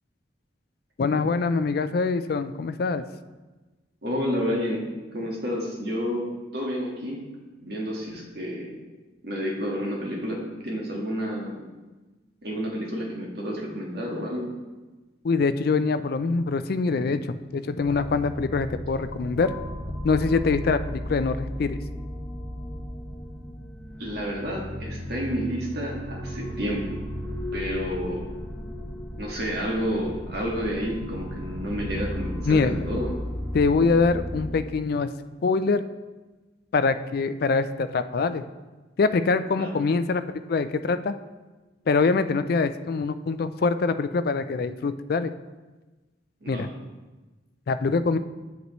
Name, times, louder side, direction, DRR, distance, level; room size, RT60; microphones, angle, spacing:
voice 1, 1.0-3.0 15.2-19.5 20.0-21.8 32.5-32.8 33.5-35.1 35.4-35.8 36.7-38.4 39.0-40.2 40.5-41.1 41.9-45.3 46.5-46.7 47.7-48.2, left 4 dB, 55° left, 11 dB, 0.4 m, -24 dB
voice 2, 4.0-4.9 5.1-7.2 7.6-8.7 9.2-11.5 12.4-14.5 24.0-26.9 27.5-28.3 29.2-33.1 39.5-39.8 46.4-46.7, equal, 60° right, -2 dB, 1.7 m, -30 dB
sound 1, 17.8-34.5, equal, 15° left, 1.2 m, -35 dB
8.1 x 7.9 x 3.1 m, 1.2 s
head